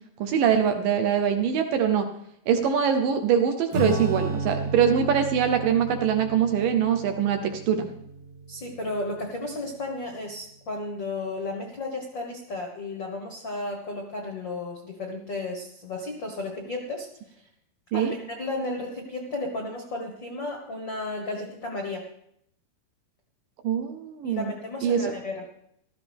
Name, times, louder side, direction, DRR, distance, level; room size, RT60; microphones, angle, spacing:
voice 1, 0.2-2.1 2.5-7.9 17.9-18.1 23.6-24.5 24.8-25.1, right 8 dB, 75° right, 6 dB, 2.2 m, -23 dB
Acoustic guitar / Strum, 3.7-9.6, right 3 dB, 45° right, 2.5 m, -33 dB
voice 2, 8.5-17.4 17.9-22.0 24.2-25.4, left 2 dB, 80° left, 1 dB, 1.0 m, -33 dB
15.5 x 13.5 x 3.5 m, 0.73 s
omnidirectional pair, 4.6 m